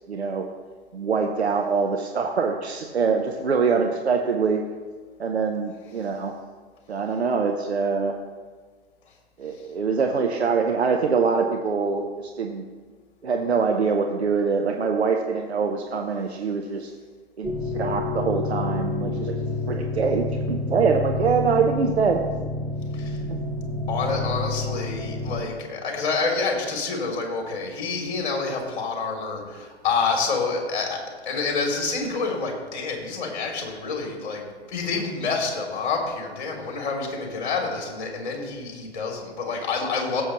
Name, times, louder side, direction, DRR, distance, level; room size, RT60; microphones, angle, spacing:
voice 1, 0.1-0.5 0.9-4.6 5.2-6.3 6.9-8.2 9.4-12.6 13.2-16.9 17.4-19.3 19.7-22.2, right 5 dB, 75° right, 3 dB, 1.0 m, -24 dB
sound 1, 17.4-25.4, left 2 dB, ahead, 1.1 m, -29 dB
voice 2, 23.9-40.2, left 4 dB, 45° left, 0 dB, 3.1 m, -28 dB
16.5 x 7.7 x 3.1 m, 1.5 s
figure-of-eight pair, 115°, 33 cm